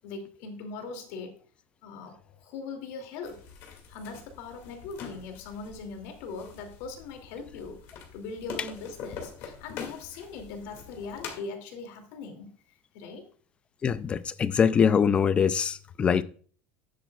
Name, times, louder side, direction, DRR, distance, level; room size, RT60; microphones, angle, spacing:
voice 1, 0.0-1.4 1.8-3.4 3.9-7.8 8.1-12.5 12.9-13.3, left 4 dB, 55° left, 2.6 m, -40 dB
sound 1, 3.2-11.4, left 6 dB, 40° left, 2.3 m, -44 dB
voice 2, 13.8-16.2, left 7 dB, 15° left, 0.4 m, -23 dB
12.5 x 10.0 x 2.4 m
cardioid pair, 180°, 7 cm